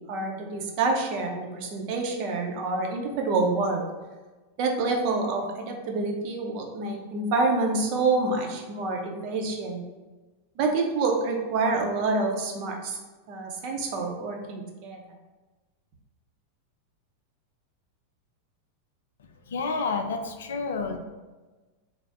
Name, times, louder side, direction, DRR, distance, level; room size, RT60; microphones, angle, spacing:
voice 1, 0.1-3.8 4.6-9.8 10.6-13.0 13.3-15.0, right 3 dB, 45° right, 2 dB, 0.5 m, -27 dB
voice 2, 19.2-21.0, left 4 dB, 65° left, 5 dB, 0.3 m, -30 dB
3.2 x 2.0 x 3.4 m, 1.2 s
figure-of-eight pair, 90°, 0 cm